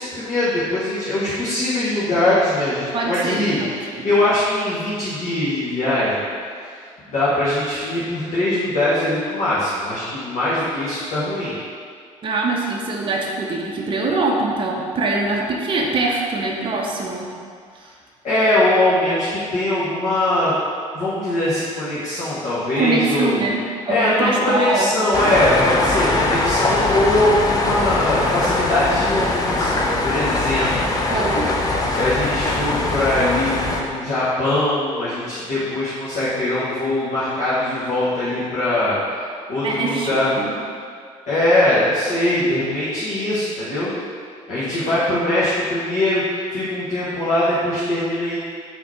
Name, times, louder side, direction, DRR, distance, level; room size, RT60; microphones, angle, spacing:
voice 1, 0.0-6.2 6.6-11.6 18.2-20.5 20.9-23.4 23.9-30.7 31.9-40.4 41.3-43.9 44.5-48.4, left 1 dB, 45° left, -11 dB, 1.2 m, -21 dB
voice 2, 2.9-4.1 12.2-17.3 22.8-24.9 31.1-31.5 39.6-40.1 40.4-40.5, right 3 dB, 30° right, -1 dB, 0.6 m, -23 dB
Rain by open window, 25.1-33.8, left 2 dB, 20° left, 0.6 m, -21 dB
4.0 x 2.9 x 4.3 m, 2.1 s
figure-of-eight pair, 50°, 17 cm